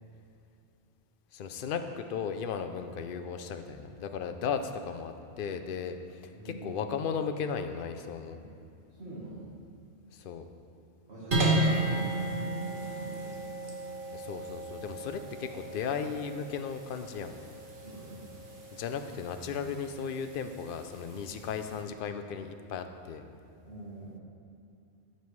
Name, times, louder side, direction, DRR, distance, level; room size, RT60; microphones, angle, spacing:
voice 1, 1.3-8.4 10.1-10.5 14.1-17.4 18.7-23.2, left 6 dB, 60° left, 7 dB, 0.6 m, -36 dB
voice 2, 6.3-7.0 8.4-8.5 8.9-9.6 11.0-13.5 17.7-18.3 23.6-24.2, right 2 dB, 60° right, -8 dB, 1.7 m, -45 dB
sound 1, 11.3-21.8, right 2 dB, 45° right, 1.3 m, -34 dB
14.0 x 5.4 x 3.2 m, 2.5 s
omnidirectional pair, 1.2 m